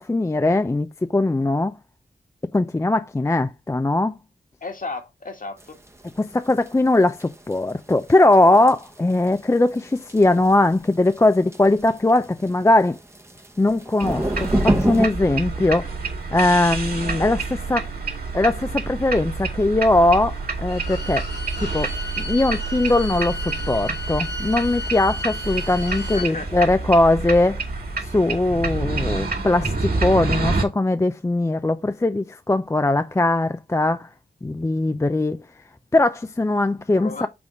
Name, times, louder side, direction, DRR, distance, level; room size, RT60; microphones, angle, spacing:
voice 1, 0.0-1.7 2.5-4.2 6.2-13.0 13.6-15.9 16.3-17.9 18.3-21.2 21.6-21.9 22.2-27.6 28.0-34.1 34.4-35.4 35.9-37.3, left 2 dB, 15° left, 0.4 m, -20 dB
voice 2, 4.6-5.8 23.5-23.8 26.1-26.5 37.0-37.3, left 3 dB, 50° left, 1.6 m, -34 dB
sound 1, 5.6-15.1, right 1 dB, 15° right, 0.9 m, -28 dB
sound 2, 14.0-30.6, right 3 dB, 55° right, 2.1 m, -28 dB
Bowed string instrument, 20.6-26.3, left 2 dB, 70° left, 3.2 m, -34 dB
6.0 x 3.6 x 5.0 m
cardioid pair, 65°, 18 cm